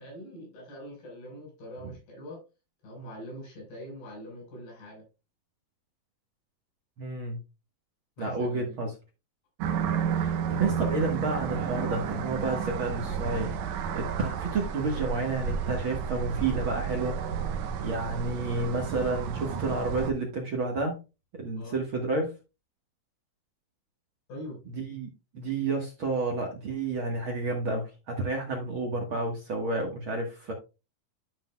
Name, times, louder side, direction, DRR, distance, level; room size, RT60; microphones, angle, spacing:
voice 1, 0.0-2.4 2.8-5.0 8.2-8.8 21.6-21.8 24.3-24.6, equal, 80° left, 6.9 m, -43 dB
voice 2, 7.0-7.4 8.2-8.9 10.2-13.5 13.9-17.2 17.8-20.9 21.3-22.3 24.7-25.1 25.3-30.5, right 3 dB, 55° right, 1.4 m, -30 dB
sound 1, 9.6-20.1, right 7 dB, 80° right, 1.7 m, -32 dB
12.0 x 5.8 x 2.3 m
omnidirectional pair, 4.4 m